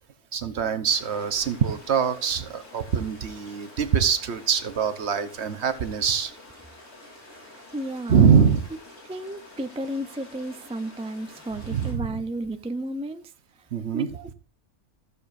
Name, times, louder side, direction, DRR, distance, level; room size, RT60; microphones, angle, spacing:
voice 1, 0.3-6.3 8.1-8.6 11.7-12.2 13.7-14.1, right 7 dB, 65° right, 1.2 m, -23 dB
sound 1, 0.8-11.9, left 2 dB, 65° left, 3.9 m, -48 dB
voice 2, 7.5-8.3 9.1-13.3 13.9-14.3, right 1 dB, 10° right, 0.3 m, -33 dB
16.0 x 6.9 x 2.6 m
omnidirectional pair, 1.2 m